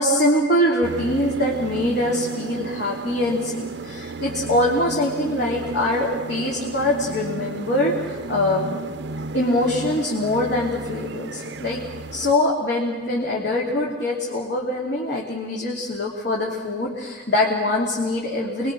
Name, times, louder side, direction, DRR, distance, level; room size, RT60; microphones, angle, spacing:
voice 1, 0.0-8.7 9.3-11.8 12.1-18.7, left 1 dB, 65° left, -3 dB, 3.2 m, -23 dB
sound 1, 0.8-12.3, right 3 dB, 65° right, 0.6 m, -33 dB
28.0 x 22.0 x 6.4 m, 1.4 s
head